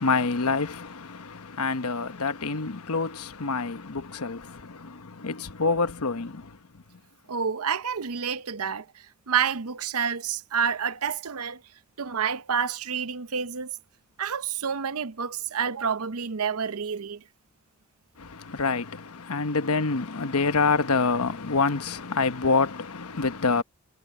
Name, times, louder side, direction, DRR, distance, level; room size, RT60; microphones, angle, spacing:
voice 1, 0.0-6.8 18.2-23.6, left 4 dB, 85° left, 1.1 m, -27 dB
voice 2, 7.3-8.9 9.3-11.6 12.0-13.8 14.2-17.2, right 7 dB, 80° right, 0.8 m, -28 dB
head